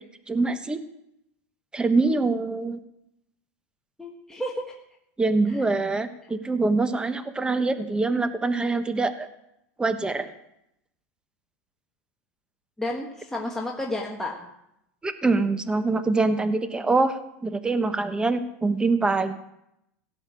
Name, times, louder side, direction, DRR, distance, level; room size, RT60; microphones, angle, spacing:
voice 1, 0.3-0.8 1.7-2.8 5.2-9.3 9.8-10.3 15.0-19.4, right 3 dB, 10° right, 10 dB, 1.1 m, -24 dB
voice 2, 4.0-4.6 5.5-5.6 12.8-14.5, left 1 dB, 5° left, -2 dB, 1.6 m, -31 dB
16.5 x 5.8 x 8.4 m, 0.81 s
supercardioid pair, 115°, 8 cm